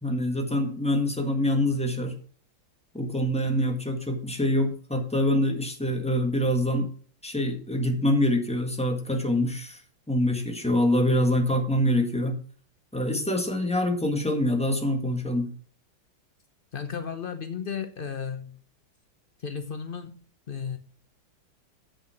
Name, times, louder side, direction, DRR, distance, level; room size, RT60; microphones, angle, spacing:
voice 1, 0.0-2.1 2.9-6.9 7.2-9.8 10.1-12.4 12.9-15.5, left 1 dB, 5° left, 4 dB, 1.3 m, -25 dB
voice 2, 16.7-18.6 19.4-20.8, left 6 dB, 90° left, 8 dB, 0.4 m, -34 dB
8.3 x 6.9 x 5.8 m, 0.44 s
omnidirectional pair, 2.2 m